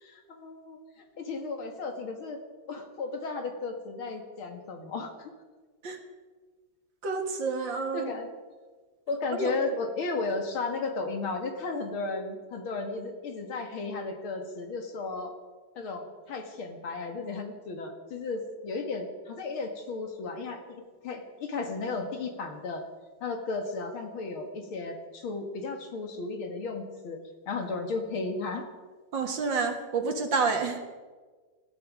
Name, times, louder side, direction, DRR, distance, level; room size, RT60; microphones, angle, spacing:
voice 1, 0.0-2.4 2.7-5.3 7.9-8.3 9.1-15.3 15.8-22.8 23.2-27.2 27.5-28.6, left 3 dB, 75° left, 4 dB, 2.7 m, -34 dB
voice 2, 7.0-8.1 9.4-9.5 29.1-30.8, right 4 dB, 65° right, 5 dB, 2.4 m, -29 dB
19.5 x 13.5 x 5.1 m, 1.4 s
omnidirectional pair, 2.3 m